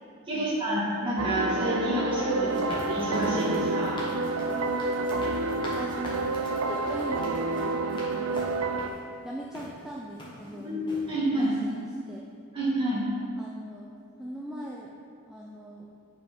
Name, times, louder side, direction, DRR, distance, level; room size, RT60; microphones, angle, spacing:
voice 1, 0.3-4.1 10.5-11.5 12.5-13.0, right 1 dB, 20° right, -8 dB, 2.0 m, -28 dB
sound 1, 1.2-8.9, right 3 dB, 80° right, 0.5 m, -29 dB
sound 2, 2.5-9.0 9.5-9.7 10.2-10.6 10.9-11.1, left 1 dB, 20° left, 1.2 m, -43 dB
voice 2, 5.7-6.4 6.7-8.4 9.2-10.7 11.3-12.2 13.4-14.9 15.3-15.9, right 1 dB, 5° right, -4 dB, 0.4 m, -40 dB
6.8 x 5.5 x 5.4 m, 2.4 s
head